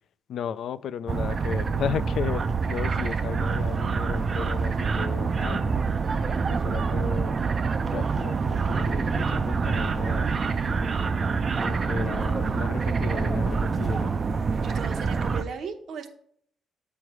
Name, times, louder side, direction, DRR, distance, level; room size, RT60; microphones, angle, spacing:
voice 1, 0.3-5.9 6.5-7.4 7.8-10.4 11.6-14.1, left 8 dB, 70° left, 15 dB, 0.3 m, -35 dB
sound 1, 1.1-15.4, right 5 dB, 40° right, 0.4 m, -26 dB
voice 2, 14.6-16.1, right 6 dB, 65° right, 5 dB, 0.8 m, -37 dB
8.4 x 3.2 x 4.7 m, 0.65 s
cardioid pair, 90°, 0 cm